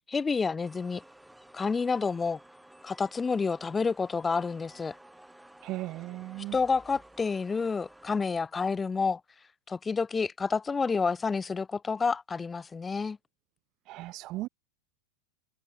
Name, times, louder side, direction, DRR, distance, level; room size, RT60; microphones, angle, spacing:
voice 1, 0.1-1.0 1.5-2.4 2.8-4.9 6.5-9.2 9.7-13.2, left 5 dB, 15° left, 0.6 m, -29 dB
sound 1, 0.6-8.2, right 1 dB, 5° right, 1.9 m, -54 dB
voice 2, 5.6-6.6 13.9-14.5, right 18 dB, 35° right, 0.5 m, -37 dB
figure-of-eight pair, 90°, 0 cm